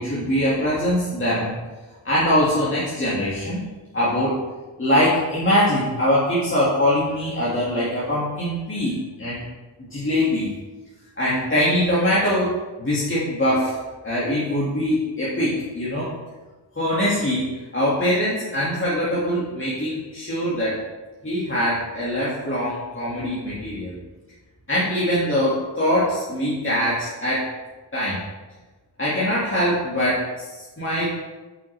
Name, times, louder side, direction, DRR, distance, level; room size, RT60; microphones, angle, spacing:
voice 1, 0.0-1.6 2.0-3.7 3.9-4.4 4.8-9.4 9.8-10.5 11.2-12.5 12.8-13.8 14.0-16.1 16.8-20.8 21.2-24.0 24.7-27.5 27.9-28.2 29.0-31.1, equal, 25° left, -8 dB, 2.0 m, -22 dB
8.0 x 6.1 x 3.3 m, 1.2 s
cardioid pair, 75°, 44 cm